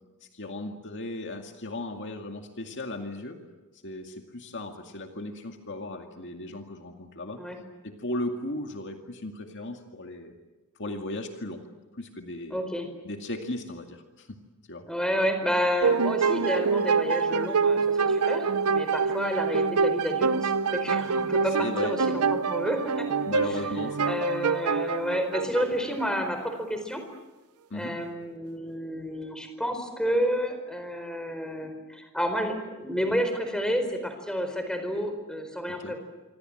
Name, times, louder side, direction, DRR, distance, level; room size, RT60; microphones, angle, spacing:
voice 1, 0.2-3.4 3.8-7.5 7.8-10.4 10.8-11.6 11.9-12.6 13.0-14.4 14.7-14.9 21.6-22.0 23.3-24.2 27.7-28.0 35.7-36.0, left 2 dB, 55° left, 4 dB, 2.2 m, -36 dB
voice 2, 12.5-12.9 14.9-23.1 24.0-27.0 27.7-36.0, equal, 5° left, 6 dB, 4.6 m, -30 dB
sound 1, 15.8-26.3, right 5 dB, 80° right, 0.8 m, -26 dB
26.0 x 26.0 x 7.8 m, 1.2 s
head